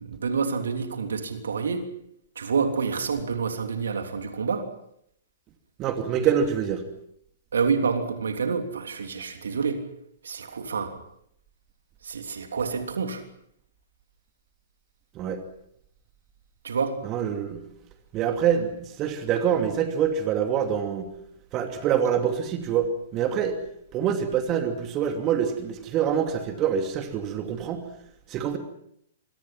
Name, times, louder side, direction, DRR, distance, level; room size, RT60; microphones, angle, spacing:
voice 1, 0.0-1.9 2.3-4.6 7.5-9.8 10.2-10.9 12.0-13.2 16.6-17.0, right 5 dB, 65° right, 6 dB, 3.3 m, -28 dB
voice 2, 5.8-6.8 15.1-15.4 17.0-17.6 18.1-21.1 21.5-23.6 23.9-27.8 28.3-28.6, right 8 dB, 30° right, 6 dB, 2.7 m, -25 dB
27.0 x 23.5 x 5.9 m, 0.73 s
figure-of-eight pair, 110°, 0 cm